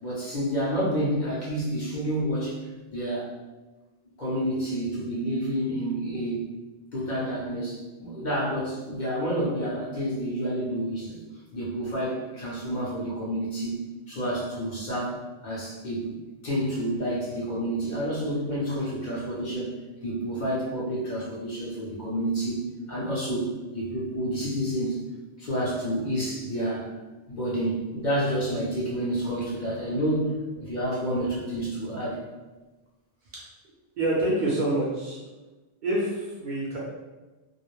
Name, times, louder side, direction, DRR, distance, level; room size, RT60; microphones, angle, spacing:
voice 1, 0.0-2.6 2.9-3.3 4.2-6.5 6.9-11.2 11.5-13.8 14.1-16.1 16.4-19.7 20.0-22.6 22.9-23.5 23.7-25.0 25.4-26.9 27.3-30.3 30.6-32.2, equal, 50° left, -6 dB, 0.7 m, -29 dB
voice 2, 34.0-35.2 35.8-36.8, right 1 dB, 55° right, -6 dB, 0.6 m, -26 dB
2.3 x 2.0 x 3.0 m, 1.2 s
omnidirectional pair, 1.1 m